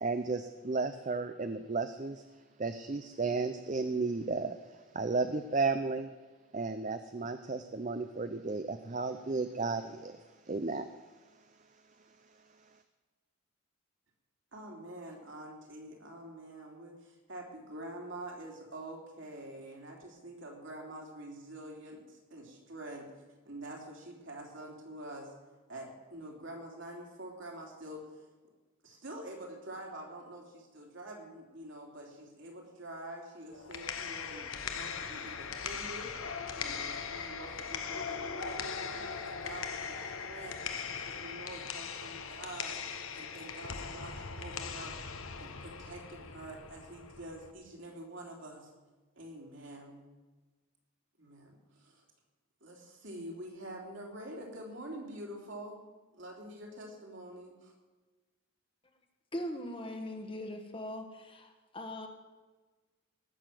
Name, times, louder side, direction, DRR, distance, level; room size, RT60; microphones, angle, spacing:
voice 1, 0.0-2.2 2.6-6.1 6.5-10.9, right 3 dB, 35° right, 9 dB, 0.5 m, -33 dB
voice 2, 14.5-23.1 23.4-25.3 25.7-28.1 28.8-36.1 36.6-40.6 41.0-42.8 43.1-44.9 45.4-48.7 49.1-50.0 51.2-52.0 52.6-55.8 56.1-57.7, right 1 dB, 60° right, 0 dB, 3.2 m, -46 dB
sound 1, 33.5-47.5, left 6 dB, 75° left, 1.1 m, -40 dB
voice 3, 59.3-62.1, left 1 dB, 25° left, 5 dB, 1.2 m, -40 dB
18.5 x 6.8 x 7.7 m, 1.3 s
head